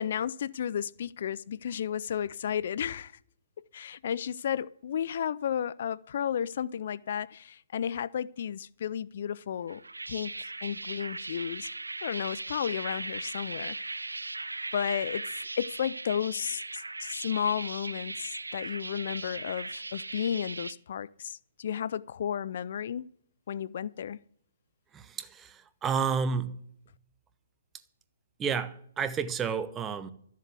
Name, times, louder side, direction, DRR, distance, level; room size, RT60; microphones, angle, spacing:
voice 1, 0.0-3.1 3.7-9.8 10.1-11.7 12.0-13.8 14.7-15.3 15.6-23.1 23.5-24.2, left 8 dB, 55° left, 0.4 m, -33 dB
sound 1, 9.7-20.7, right 2 dB, 90° right, 0.7 m, -38 dB
voice 2, 24.9-26.6 28.4-30.1, right 6 dB, 15° right, 0.9 m, -31 dB
13.0 x 7.5 x 8.2 m
figure-of-eight pair, 130°, 0 cm